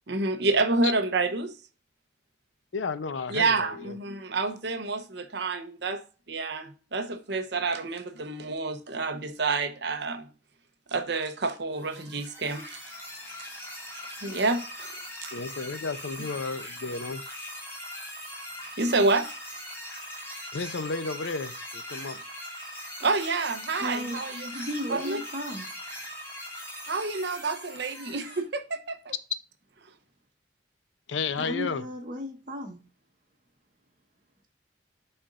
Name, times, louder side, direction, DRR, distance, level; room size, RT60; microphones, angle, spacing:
voice 1, 0.1-1.6 3.3-6.0 6.3-10.3 10.9-12.8 14.2-15.3 18.8-19.3 23.0-24.5 24.9-25.2 26.9-29.1, right 3 dB, 60° right, 0.9 m, -28 dB
voice 2, 2.7-3.9 15.3-17.2 20.5-22.2 31.1-31.8, left 4 dB, 80° left, 0.6 m, -32 dB
sound 1, 11.7-28.4, equal, 15° left, 2.7 m, -41 dB
voice 3, 23.8-24.2 24.5-25.7 31.4-32.8, equal, 45° right, 1.5 m, -34 dB
11.0 x 4.4 x 2.5 m
head